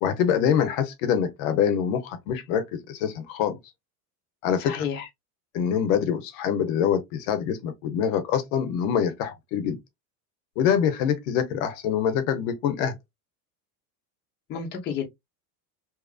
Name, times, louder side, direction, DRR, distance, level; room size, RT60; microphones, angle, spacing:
voice 1, 0.0-3.6 4.4-4.8 5.5-9.8 10.6-12.9, left 8 dB, 60° left, 0.7 m, -25 dB
voice 2, 4.6-5.1 14.5-15.0, left 7 dB, 25° left, 0.6 m, -30 dB
2.9 x 2.4 x 2.3 m
cardioid pair, 160°, 45 cm